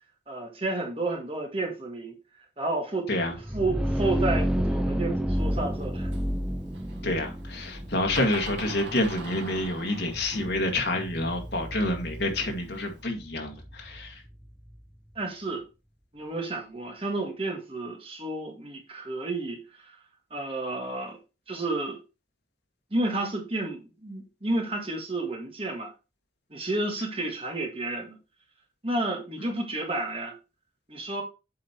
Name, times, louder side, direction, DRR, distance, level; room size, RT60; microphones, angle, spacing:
voice 1, 0.3-2.2 2.6-3.1 3.5-6.1 7.7-7.8 15.1-15.6 16.1-20.0 20.3-21.2 21.5-22.0 22.9-25.9 26.5-28.2 28.8-30.4 30.9-31.2, right 2 dB, 30° right, 1.7 m, -31 dB
sound 1, 3.3-14.9, equal, 5° right, 0.5 m, -31 dB
Door, 5.4-13.0, right 2 dB, 85° right, 1.4 m, -45 dB
voice 2, 7.0-14.2, left 1 dB, 70° left, 1.8 m, -28 dB
7.5 x 4.4 x 4.4 m
head